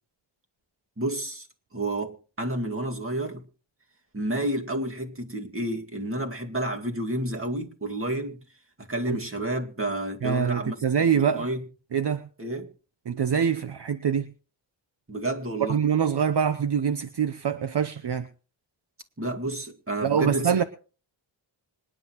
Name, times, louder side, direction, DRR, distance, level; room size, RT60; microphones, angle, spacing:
voice 1, 1.0-1.5 1.7-3.5 4.1-8.4 8.8-10.8 11.1-11.6 12.4-12.7 15.1-15.8 19.2-20.6, right 1 dB, 25° right, 2.2 m, -30 dB
voice 2, 10.2-11.5 11.9-12.3 13.1-14.3 15.6-18.3 20.0-20.6, right 7 dB, 60° right, 0.9 m, -24 dB
26.0 x 10.0 x 3.1 m
cardioid pair, 65°, 47 cm